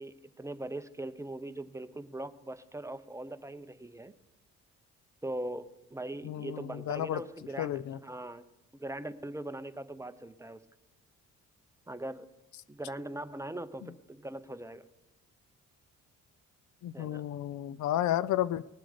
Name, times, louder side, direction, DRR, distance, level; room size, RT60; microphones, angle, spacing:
voice 1, 0.0-4.1 5.2-8.4 8.7-10.6 11.9-12.3 12.7-14.8 16.9-17.3, right 1 dB, 10° right, 0.7 m, -41 dB
voice 2, 6.2-7.2 7.6-8.0 16.8-18.6, left 12 dB, 70° left, 0.5 m, -32 dB
20.0 x 7.7 x 5.0 m
cardioid pair, 90°, 30 cm